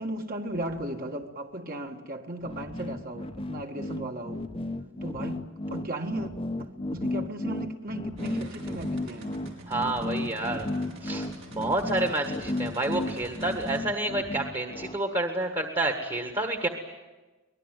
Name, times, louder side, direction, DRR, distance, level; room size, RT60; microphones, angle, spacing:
voice 1, 0.0-4.4 5.0-5.4 5.7-6.3 6.6-9.4, right 1 dB, 45° right, 1.8 m, -36 dB
sound 1, 2.4-15.0, left 2 dB, 30° left, 0.9 m, -34 dB
sound 2, 8.2-13.8, right 1 dB, 80° right, 5.5 m, -46 dB
voice 2, 9.7-10.7 11.0-16.7, right 2 dB, 25° right, 1.6 m, -29 dB
24.0 x 20.0 x 9.2 m
head